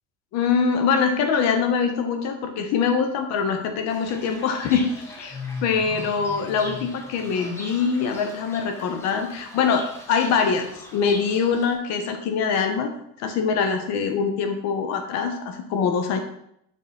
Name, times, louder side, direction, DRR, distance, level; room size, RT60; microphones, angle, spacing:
voice 1, 0.3-5.3 5.6-12.9 13.2-16.2, left 6 dB, 35° left, 6 dB, 0.9 m, -23 dB
Fowl / Bird, 3.9-11.7, left 2 dB, 5° left, 0.6 m, -40 dB
6.6 x 4.1 x 5.1 m, 0.75 s
cardioid pair, 165°, 45 cm